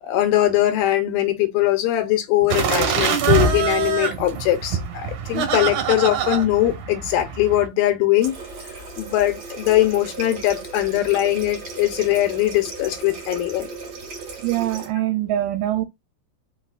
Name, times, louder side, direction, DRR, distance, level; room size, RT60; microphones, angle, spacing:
voice 1, 0.0-8.4 9.0-13.7, left 14 dB, 80° left, 2.3 m, -21 dB
sound 1, 2.5-7.7, right 6 dB, 65° right, 2.3 m, -24 dB
Water tap faucet, 8.2-14.9, right 4 dB, 50° right, 2.1 m, -36 dB
voice 2, 14.4-15.9, right 13 dB, 85° right, 1.8 m, -23 dB
5.4 x 3.9 x 2.4 m
omnidirectional pair, 4.3 m